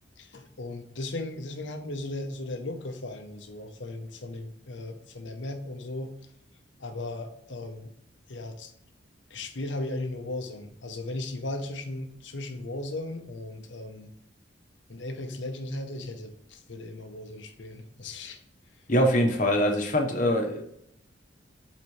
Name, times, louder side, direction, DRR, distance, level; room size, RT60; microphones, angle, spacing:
voice 1, 0.2-6.1 6.8-7.9 8.3-8.7 9.3-14.1 14.9-18.4, left 2 dB, 70° left, 6 dB, 0.8 m, -36 dB
voice 2, 18.9-20.6, equal, 40° left, 3 dB, 1.1 m, -23 dB
8.4 x 4.1 x 3.2 m, 0.74 s
head